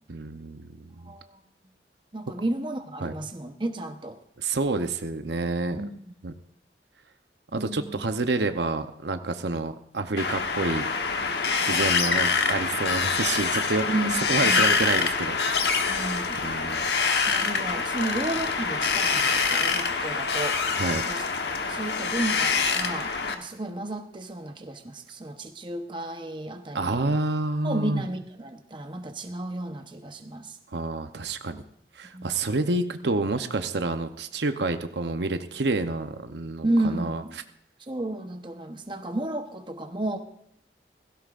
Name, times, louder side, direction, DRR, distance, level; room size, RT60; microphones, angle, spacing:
voice 1, 0.1-1.1 3.0-3.1 4.4-5.8 6.2-6.3 7.5-10.9 11.6-15.9 16.4-16.9 20.7-21.0 26.7-28.0 30.7-31.6 31.9-37.2, right 3 dB, 75° right, 8 dB, 0.8 m, -28 dB
voice 2, 1.0-1.4 2.1-4.2 5.8-6.1 7.5-8.0 13.9-14.7 15.9-16.4 17.3-20.6 20.9-21.2 21.7-27.2 27.6-30.6 32.1-32.3 36.6-37.3 37.9-40.2, right 1 dB, 25° right, 6 dB, 0.9 m, -32 dB
Wind, 10.2-23.3, left 5 dB, 70° left, 1.2 m, -25 dB
16.5 x 16.5 x 2.5 m, 0.73 s
head